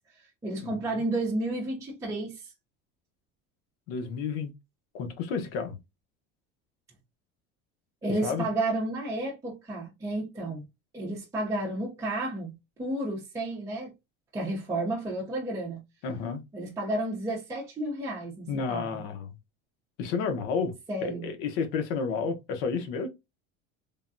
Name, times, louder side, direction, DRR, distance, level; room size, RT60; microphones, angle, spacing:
voice 1, 0.4-2.5 8.0-10.6 10.9-12.5 12.8-13.9 14.3-15.8 16.5-19.0 20.9-21.3, right 2 dB, 10° right, 0.6 m, -31 dB
voice 2, 3.9-4.5 4.9-5.8 8.2-8.5 16.0-16.4 18.5-19.3 20.0-20.7 21.0-23.1, left 5 dB, 80° left, 0.9 m, -31 dB
3.5 x 2.2 x 2.5 m
cardioid pair, 165°, 29 cm